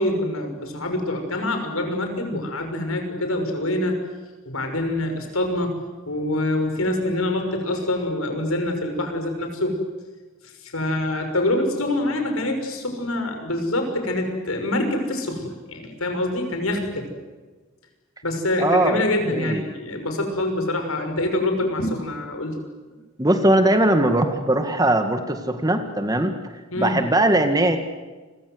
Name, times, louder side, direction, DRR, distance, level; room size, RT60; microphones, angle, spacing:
voice 1, 0.0-4.0 4.5-5.8 6.1-9.8 10.6-17.1 18.2-22.6 26.7-27.0, left 1 dB, 80° left, 5 dB, 5.9 m, -25 dB
voice 2, 18.6-19.7 23.2-26.4 26.8-27.8, right 1 dB, 15° right, 7 dB, 1.9 m, -20 dB
30.0 x 24.0 x 8.0 m, 1.3 s
head